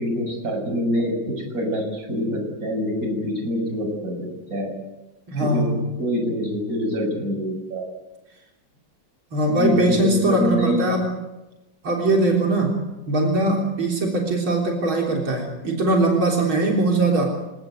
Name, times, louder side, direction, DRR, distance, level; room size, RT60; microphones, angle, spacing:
voice 1, 0.0-4.7 5.4-7.8 9.5-10.8, equal, 40° right, 3 dB, 7.7 m, -25 dB
voice 2, 5.3-5.9 9.3-11.2 11.8-17.4, right 2 dB, 85° right, 0 dB, 4.5 m, -21 dB
27.5 x 19.0 x 9.5 m, 1.0 s
omnidirectional pair, 2.2 m